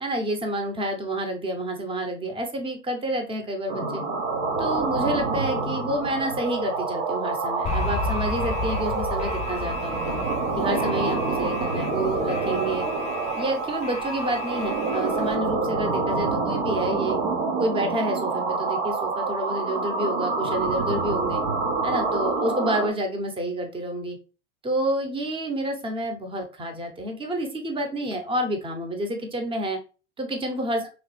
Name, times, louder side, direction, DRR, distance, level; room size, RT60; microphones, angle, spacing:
voice 1, 0.0-4.0 4.6-10.2 10.5-12.9 13.4-17.2 17.6-21.4 21.8-24.2 24.6-29.8 30.2-30.8, right 1 dB, 15° right, 4 dB, 0.8 m, -29 dB
sound 1, 3.7-22.9, right 3 dB, 65° right, 1.0 m, -27 dB
Alarm, 7.7-15.4, left 4 dB, 20° left, 0.4 m, -33 dB
3.8 x 3.1 x 3.2 m, 0.34 s
figure-of-eight pair, 85°, 36 cm